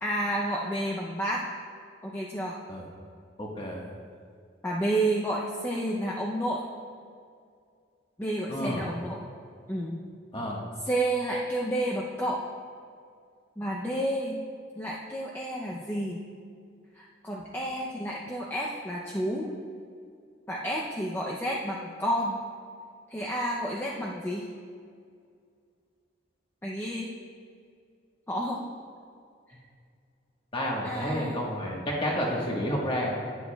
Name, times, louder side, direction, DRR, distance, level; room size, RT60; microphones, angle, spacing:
voice 1, 0.0-1.4 2.0-2.6 4.6-6.6 8.2-9.3 9.7-10.1 10.8-12.4 13.6-14.4 14.8-16.3 16.9-19.5 20.5-22.4 23.1-24.5 26.6-27.1 28.3-28.7 30.8-31.4, right 1 dB, 10° left, -4 dB, 0.5 m, -30 dB
voice 2, 3.4-3.8 8.5-8.8 10.3-10.6 30.5-33.1, equal, 30° left, -2 dB, 1.4 m, -30 dB
11.0 x 9.6 x 2.3 m, 2.2 s
head